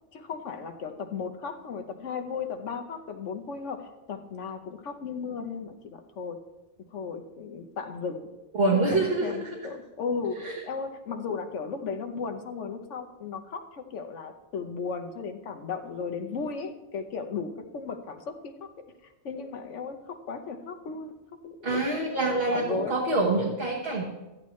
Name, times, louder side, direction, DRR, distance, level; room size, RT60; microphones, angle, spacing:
voice 1, 0.1-6.4 6.9-8.3 8.7-18.5 19.2-21.1 21.4-23.0, left 5 dB, 90° left, 6 dB, 1.2 m, -35 dB
voice 2, 8.6-9.6 10.4-10.5 21.6-24.0, right 2 dB, 55° right, -3 dB, 1.5 m, -26 dB
13.5 x 10.5 x 3.2 m, 1.0 s
omnidirectional pair, 1.2 m